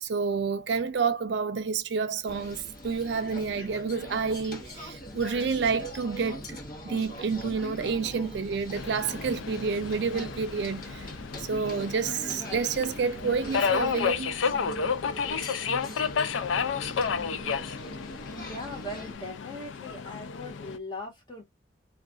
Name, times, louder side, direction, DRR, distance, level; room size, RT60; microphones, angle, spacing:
voice 1, 0.0-11.1 11.4-14.4, right 5 dB, 65° right, 0.4 m, -29 dB
sound 1, 2.3-19.1, left 1 dB, 50° left, 1.0 m, -42 dB
sound 2, 5.0-11.6, equal, ahead, 0.6 m, -49 dB
Subway metro underground, 8.8-20.8, left 6 dB, 85° left, 0.4 m, -32 dB
voice 2, 18.4-21.4, left 1 dB, 25° left, 1.0 m, -39 dB
2.3 x 2.3 x 3.7 m
head